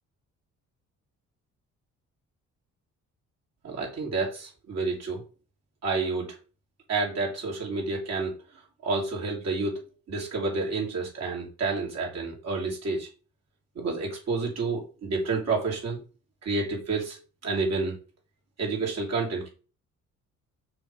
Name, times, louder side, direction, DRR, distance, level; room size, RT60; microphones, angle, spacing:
voice 1, 3.6-5.2 5.8-6.4 6.9-8.3 8.8-13.1 13.7-16.0 16.4-18.0 18.6-19.5, right 3 dB, 60° right, -2 dB, 3.0 m, -29 dB
6.0 x 3.4 x 5.3 m, 0.36 s
cardioid pair, 90°, 30 cm